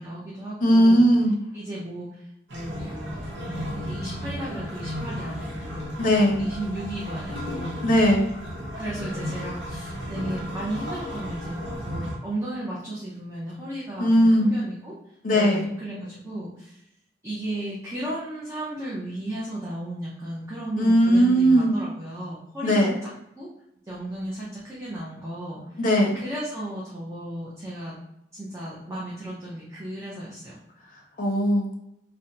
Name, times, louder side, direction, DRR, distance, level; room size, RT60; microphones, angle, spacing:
voice 1, 0.0-1.1 1.5-2.2 2.5-3.2 3.5-7.8 8.7-14.9 15.3-16.8 17.2-23.0 23.4-23.5 23.9-25.6 26.1-27.9 28.3-30.6, right 1 dB, 15° right, -7 dB, 0.6 m, -35 dB
voice 2, 0.6-1.3 6.0-6.5 7.8-8.3 14.0-14.5 15.2-15.7 20.8-21.7 22.6-23.0 25.8-26.2 31.2-31.7, equal, 45° left, 0 dB, 0.6 m, -19 dB
sound 1, 2.5-12.2, equal, 70° right, 0.9 m, -34 dB
2.8 x 2.1 x 3.7 m, 0.82 s
head